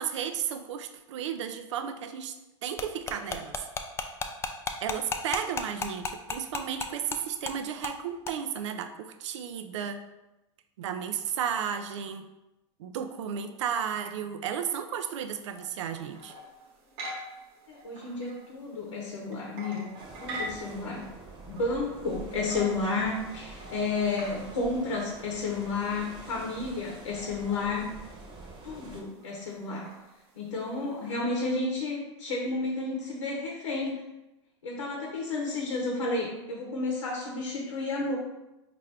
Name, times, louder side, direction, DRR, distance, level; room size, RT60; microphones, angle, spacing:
voice 1, 0.0-2.4 2.6-3.6 4.8-10.0 10.8-12.3 12.8-16.3, right 8 dB, 75° right, 8 dB, 0.4 m, -33 dB
sound 1, 2.8-7.2 7.5-7.6 7.8-8.0 8.3-8.4, left 4 dB, 15° left, 0.3 m, -32 dB
sound 2, 15.4-31.2, right 1 dB, 55° right, 1.0 m, -46 dB
voice 2, 17.7-19.9 20.2-21.0 21.5-27.9 28.6-29.9 30.4-34.0 34.6-38.2, left 3 dB, 90° left, -1 dB, 0.8 m, -31 dB
sound 3, 20.0-29.0, right 3 dB, 30° right, 1.0 m, -46 dB
4.4 x 2.5 x 3.3 m, 0.98 s
hypercardioid pair, 100°, 15 cm